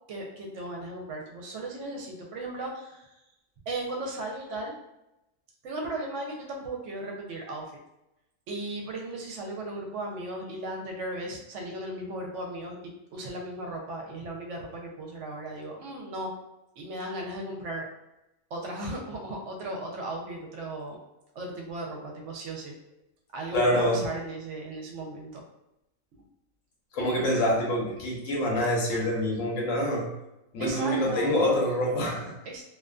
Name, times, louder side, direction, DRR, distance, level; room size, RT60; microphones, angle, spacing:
voice 1, 0.1-3.1 3.7-4.7 5.6-7.7 8.5-12.8 13.1-16.3 16.8-17.9 18.5-21.0 21.3-22.7 23.3-25.4 30.6-31.3 32.5-32.6, right 1 dB, 75° right, 0 dB, 0.9 m, -36 dB
voice 2, 23.5-24.0 26.9-30.1 30.5-32.3, left 1 dB, 85° left, -2 dB, 1.1 m, -26 dB
2.5 x 2.4 x 2.2 m, 0.91 s
omnidirectional pair, 1.3 m